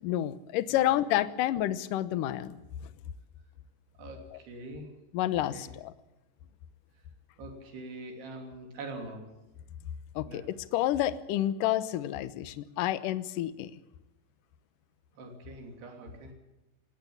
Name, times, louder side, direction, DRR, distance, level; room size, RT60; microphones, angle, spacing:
voice 1, 0.0-2.6 4.3-4.4 5.1-5.9 10.2-13.7, left 13 dB, 70° left, 14 dB, 2.1 m, -29 dB
voice 2, 4.0-4.9 5.5-5.6 7.4-9.3 10.3-10.4 15.2-16.3, right 2 dB, 70° right, 4 dB, 5.0 m, -43 dB
20.5 x 17.5 x 8.5 m, 1.0 s
omnidirectional pair, 4.9 m